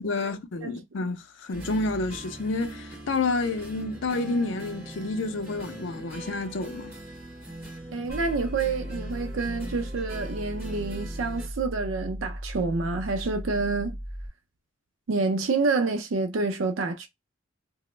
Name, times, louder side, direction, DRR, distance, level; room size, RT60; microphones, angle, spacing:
voice 1, 0.0-6.9, left 3 dB, 65° left, 0.5 m, -29 dB
sound 1, 1.5-11.5, right 1 dB, 10° right, 1.5 m, -42 dB
voice 2, 7.9-14.0 15.1-17.1, right 3 dB, 80° right, 0.5 m, -28 dB
sound 2, 8.1-14.3, equal, 20° left, 0.9 m, -37 dB
2.8 x 2.0 x 3.2 m
head